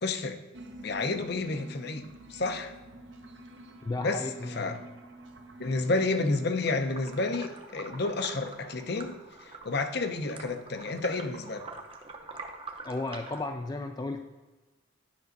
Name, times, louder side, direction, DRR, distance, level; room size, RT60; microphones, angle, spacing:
voice 1, 0.0-0.4 0.8-2.7 4.0-4.2 4.6-4.8 5.6-9.2 9.5-11.6, left 3 dB, 55° left, 7 dB, 0.7 m, -30 dB
sound 1, 0.5-9.5, right 1 dB, 60° right, 0.8 m, -49 dB
voice 2, 3.8-4.8 5.7-5.8 12.8-14.2, left 2 dB, 20° left, 5 dB, 0.3 m, -34 dB
sound 2, 6.6-13.5, right 3 dB, 30° right, 0.7 m, -45 dB
10.5 x 5.4 x 4.0 m, 1.2 s
head